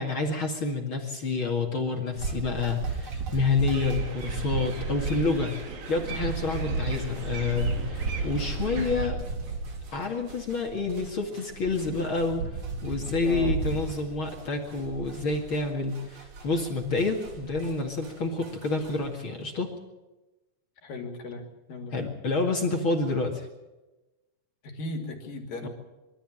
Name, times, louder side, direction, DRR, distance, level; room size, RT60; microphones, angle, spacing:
voice 1, 0.0-5.6 5.9-9.2 9.9-12.5 12.8-19.7 21.9-23.5 25.6-25.7, left 3 dB, 40° left, 2 dB, 2.6 m, -28 dB
sound 1, 2.2-18.1 18.4-19.1, right 3 dB, 40° right, 2.8 m, -34 dB
sound 2, 3.7-9.1, right 4 dB, 80° right, 4.2 m, -41 dB
voice 2, 13.2-13.6 20.8-22.1 24.6-25.7, left 2 dB, 80° left, 2 dB, 4.8 m, -37 dB
25.0 x 13.0 x 8.9 m, 1.1 s
omnidirectional pair, 3.9 m